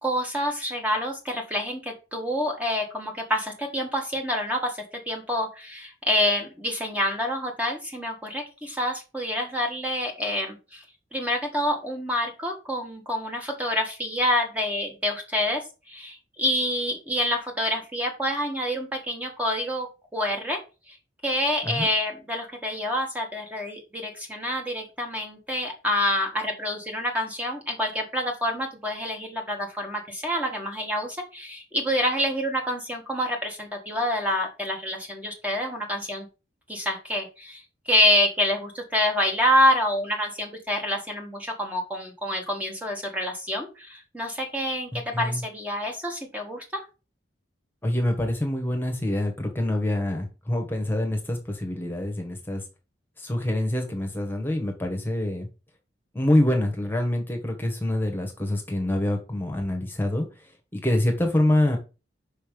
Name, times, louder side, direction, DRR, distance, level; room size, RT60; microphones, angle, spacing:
voice 1, 0.0-4.8 5.1-10.8 11.1-19.9 20.1-20.6 20.9-21.0 21.2-36.3 36.7-37.6 37.9-46.8, left 1 dB, 10° right, 2 dB, 1.4 m, -27 dB
voice 2, 44.9-45.4 47.8-52.6 53.2-55.5 56.1-61.8, left 1 dB, 10° left, 3 dB, 1.4 m, -26 dB
5.7 x 5.3 x 5.2 m, 0.30 s
head